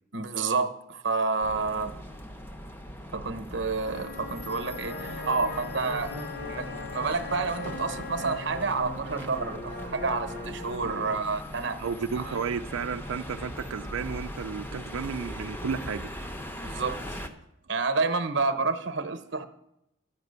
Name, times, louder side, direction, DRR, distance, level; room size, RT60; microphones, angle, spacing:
voice 1, 0.1-1.9 3.1-6.1 6.5-11.8 12.1-12.3 16.5-17.2 17.7-19.4, right 4 dB, 60° right, 0.9 m, -29 dB
sound 1, 1.4-17.3, equal, 10° left, 0.7 m, -40 dB
Wind instrument woodwind instrument, 3.8-8.8, left 7 dB, 50° left, 0.4 m, -42 dB
sound 2, 4.8-11.2 11.8-13.8 14.1-14.6, equal, 80° left, 5.6 m, -41 dB
voice 2, 11.8-16.1, right 6 dB, 85° right, 0.4 m, -33 dB
11.5 x 5.9 x 8.0 m
head